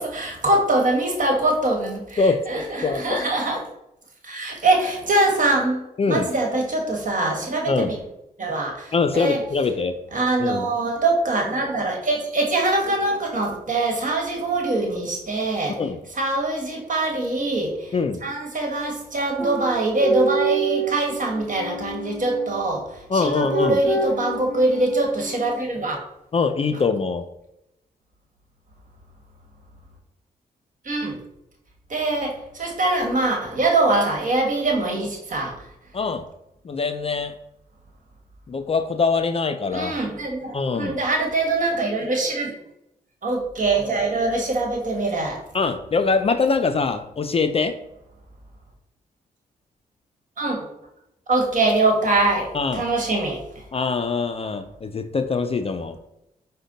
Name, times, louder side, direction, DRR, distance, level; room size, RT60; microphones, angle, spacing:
voice 1, 0.0-3.6 4.2-8.0 8.4-9.4 10.1-15.8 16.1-17.9 18.2-26.0 26.7-26.9 30.8-31.2 31.9-35.6 39.7-42.5 43.2-45.4 50.4-50.6 51.3-53.6, right 2 dB, 50° right, 1 dB, 1.3 m, -23 dB
voice 2, 2.2-3.2 6.0-6.3 7.7-7.9 8.9-10.0 10.4-10.7 15.8-16.0 17.9-18.2 23.1-23.8 26.3-27.2 35.9-36.2 36.6-37.3 38.5-40.0 40.5-41.0 45.5-47.8 52.5-52.8 53.7-56.0, left 4 dB, 35° left, 8 dB, 0.4 m, -23 dB
sound 1, 19.4-22.5 23.2-25.5, right 3 dB, 15° left, 1.1 m, -28 dB
5.0 x 2.1 x 3.9 m, 0.84 s
cardioid pair, 55°, 17 cm